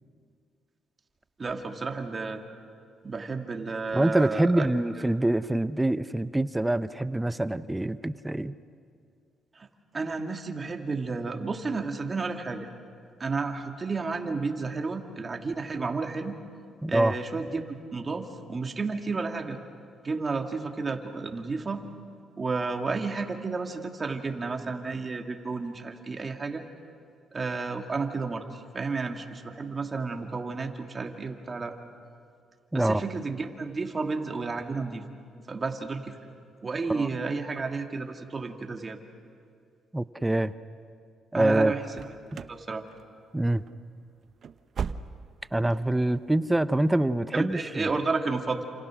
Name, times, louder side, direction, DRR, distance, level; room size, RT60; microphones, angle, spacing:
voice 1, 1.4-2.4 3.0-4.7 9.6-9.7 9.9-12.7 13.2-16.3 16.9-19.6 20.0-21.8 22.4-26.6 27.3-31.8 32.7-35.0 35.5-36.3 36.6-39.0 41.3-42.1 42.5-42.8 47.3-48.6, right 4 dB, 35° right, 3 dB, 2.4 m, -32 dB
voice 2, 3.9-8.5 16.8-17.2 32.7-33.0 36.9-37.1 39.9-40.5 41.3-41.7 43.3-43.6 45.5-48.0, right 1 dB, 10° right, 13 dB, 0.7 m, -25 dB
sound 1, 41.9-42.6 42.9-43.4 43.7-43.8 44.2-45.5 45.8-45.9 46.4-46.5, right 6 dB, 55° right, 0.8 m, -37 dB
29.0 x 27.5 x 6.3 m, 2.3 s
cardioid pair, 90°, 0 cm